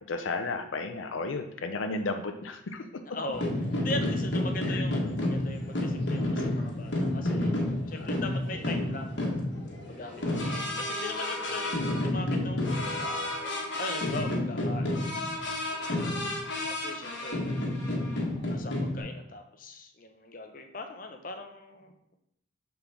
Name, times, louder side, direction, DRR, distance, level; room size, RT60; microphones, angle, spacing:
voice 1, 0.1-2.9 4.7-4.8 8.0-8.1 16.0-16.3, left 3 dB, 80° left, 7 dB, 0.5 m, -33 dB
voice 2, 3.1-3.5 3.8-7.5 7.9-9.4 9.9-13.3 13.8-15.0 16.7-17.7 18.5-21.9, left 2 dB, 45° left, 5 dB, 0.8 m, -40 dB
sound 1, 3.3-19.0, left 1 dB, 65° left, 1.4 m, -30 dB
6.8 x 3.8 x 6.0 m, 0.78 s
head